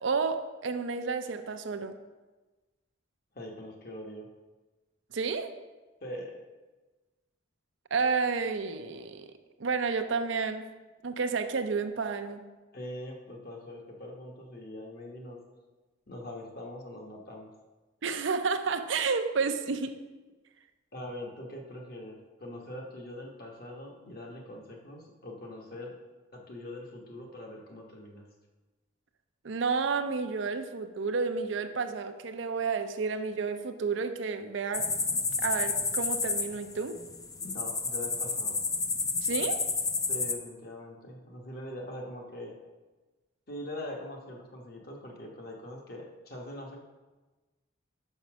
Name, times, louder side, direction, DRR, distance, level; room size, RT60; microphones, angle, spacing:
voice 1, 0.0-2.0 5.1-5.5 7.9-9.3 9.6-10.7 11.0-12.4 18.0-19.9 29.4-34.9 35.4-37.0 39.2-39.6, right 5 dB, 65° right, 8 dB, 0.5 m, -31 dB
voice 2, 3.3-4.3 6.0-6.4 12.7-15.4 16.1-17.5 20.9-26.0 26.3-28.3 37.4-38.6 40.1-42.5 43.5-46.8, left 1 dB, 50° left, 0 dB, 1.1 m, -42 dB
sound 1, 34.7-40.3, left 4 dB, 15° left, 0.4 m, -30 dB
5.7 x 5.4 x 6.0 m, 1.2 s
head